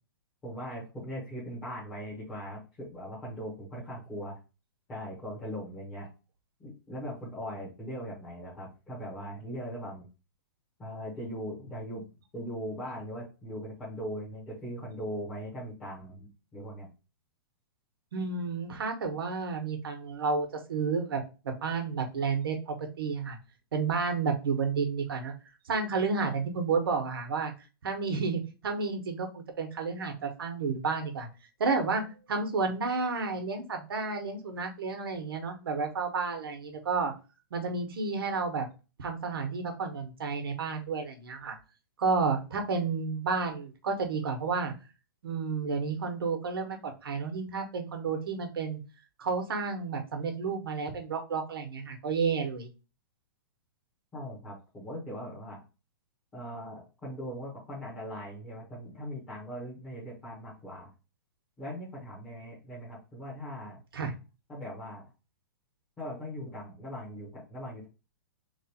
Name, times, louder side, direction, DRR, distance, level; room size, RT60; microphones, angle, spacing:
voice 1, 0.4-4.4 4.9-6.1 6.6-10.1 10.8-12.0 12.3-16.9 54.1-55.6 56.3-60.9 61.6-63.8 64.5-65.1 66.0-67.9, equal, 10° left, -11 dB, 1.0 m, -40 dB
voice 2, 18.1-23.4 23.7-25.3 25.7-27.5 27.8-31.3 31.6-32.0 32.3-37.1 37.5-38.6 39.0-41.5 42.0-44.7 45.2-48.8 49.2-52.7 63.9-64.1, right 4 dB, 75° right, 4 dB, 1.1 m, -31 dB
3.2 x 2.5 x 4.2 m, 0.30 s
hypercardioid pair, 180°, 12 cm